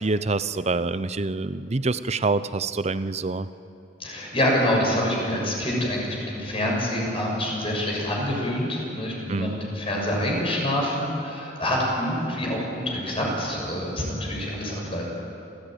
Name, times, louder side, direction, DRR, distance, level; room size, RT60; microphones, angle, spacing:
voice 1, 0.0-3.5 9.3-9.6, right 3 dB, 40° right, 14 dB, 0.7 m, -26 dB
voice 2, 4.0-15.1, left 1 dB, 30° left, -2 dB, 6.6 m, -26 dB
28.0 x 15.5 x 9.1 m, 2.7 s
head